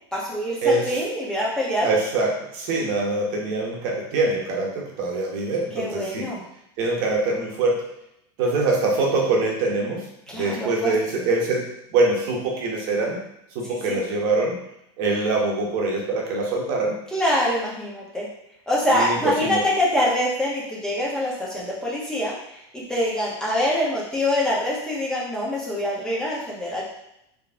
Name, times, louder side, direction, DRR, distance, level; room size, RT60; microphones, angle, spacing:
voice 1, 0.1-1.9 5.7-6.4 10.3-11.3 13.9-14.0 17.1-18.3 18.7-22.3 22.9-26.8, left 1 dB, 5° left, -6 dB, 1.4 m, -25 dB
voice 2, 0.6-1.0 1.8-6.3 6.8-7.8 8.4-13.2 13.5-14.6 15.0-16.9 18.9-19.6, right 3 dB, 60° right, -1 dB, 1.4 m, -24 dB
4.3 x 3.3 x 3.7 m, 0.81 s
supercardioid pair, 135°, 14 cm